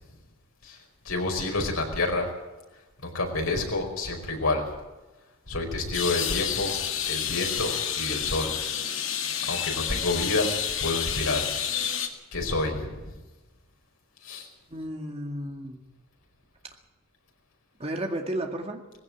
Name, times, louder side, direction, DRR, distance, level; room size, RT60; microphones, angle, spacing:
voice 1, 1.0-2.3 3.0-4.6 5.5-6.7 7.1-8.5 9.5-11.5 12.3-13.0 14.2-14.5, left 2 dB, 85° left, 2 dB, 5.0 m, -28 dB
sound 1, 5.9-12.1, left 8 dB, 65° left, 2.1 m, -29 dB
voice 2, 14.7-15.8 17.8-18.8, right 1 dB, 30° right, 3 dB, 2.1 m, -33 dB
19.0 x 16.0 x 8.8 m, 1.1 s
head